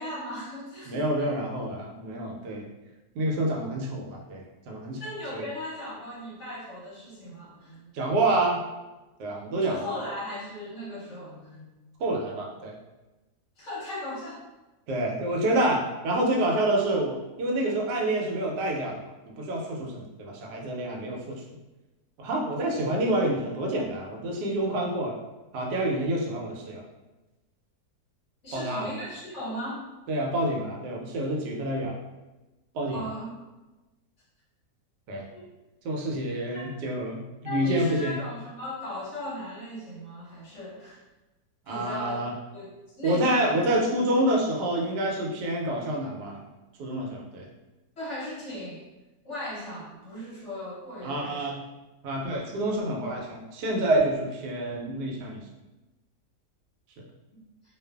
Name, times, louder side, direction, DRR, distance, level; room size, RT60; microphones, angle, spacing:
voice 1, 0.0-1.3 5.0-7.9 9.6-11.7 13.6-14.4 28.4-29.9 32.9-33.5 35.3-35.5 36.2-36.7 37.4-41.0 41.7-42.2 42.5-42.7 43.0-43.5 48.0-48.8 49.2-51.4 57.3-57.4, left 1 dB, 55° left, -6 dB, 0.9 m, -37 dB
voice 2, 0.9-2.7 3.1-5.0 5.3-5.5 7.9-8.6 9.2-9.9 12.0-12.7 14.9-19.0 19.3-21.4 22.2-25.2 25.5-26.8 28.5-28.9 30.1-32.0 32.7-33.0 35.1-35.2 35.8-38.2 41.7-42.3 43.0-46.4 46.8-47.5 51.0-51.5 52.0-55.4, right 1 dB, 90° right, -1 dB, 1.2 m, -28 dB
2.5 x 2.4 x 2.2 m, 1.1 s
omnidirectional pair, 1.7 m